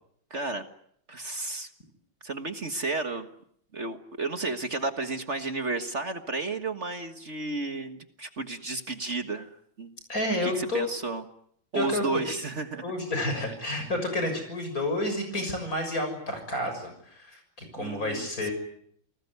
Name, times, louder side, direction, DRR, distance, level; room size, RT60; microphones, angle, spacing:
voice 1, 0.3-0.6 1.1-1.7 2.2-3.3 3.7-9.5 9.8-9.9 10.4-11.2 11.7-12.8 17.8-18.5, right 3 dB, 35° right, 8 dB, 1.7 m, -32 dB
voice 2, 10.1-10.8 11.7-12.2 12.8-18.5, left 1 dB, 40° left, 6 dB, 7.1 m, -30 dB
29.0 x 19.5 x 9.5 m, 0.68 s
omnidirectional pair, 2.2 m